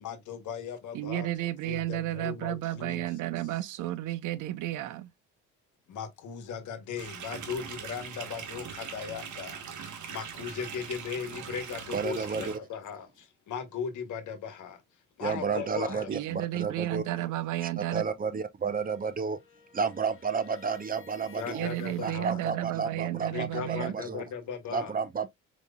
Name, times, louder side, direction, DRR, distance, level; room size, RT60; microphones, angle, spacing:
voice 1, 0.0-1.3 1.6-3.1 5.9-14.8 15.2-16.1 21.3-22.4 23.3-24.9, left 7 dB, 75° left, 1.1 m, -38 dB
voice 2, 0.9-5.1 16.1-18.0 21.5-23.9, right 14 dB, 90° right, 0.6 m, -32 dB
sound 1, 7.0-12.6, right 7 dB, 75° right, 1.2 m, -41 dB
voice 3, 11.9-12.6 15.2-17.0 17.6-19.4 19.7-21.7 22.0-24.2 24.7-25.3, right 5 dB, 30° right, 0.7 m, -31 dB
sound 2, 18.6-22.2, left 5 dB, 45° left, 1.1 m, -55 dB
5.1 x 3.0 x 2.2 m
cardioid pair, 90°, 30 cm